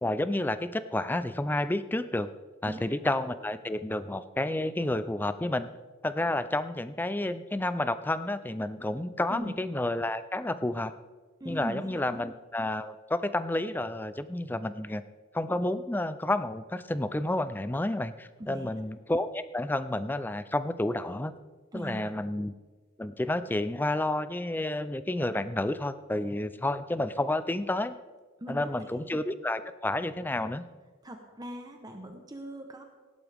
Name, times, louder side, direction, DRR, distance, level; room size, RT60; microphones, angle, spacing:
voice 1, 0.0-2.3 2.6-5.7 6.0-10.9 11.4-15.0 15.3-21.3 21.7-22.5 23.0-28.0 28.5-30.6, left 1 dB, 10° left, 13 dB, 0.4 m, -30 dB
voice 2, 11.4-12.0 18.4-18.7 21.7-22.1 28.4-29.0 31.0-32.8, right 1 dB, 20° right, 4 dB, 0.9 m, -40 dB
17.0 x 11.0 x 3.5 m, 1.4 s
head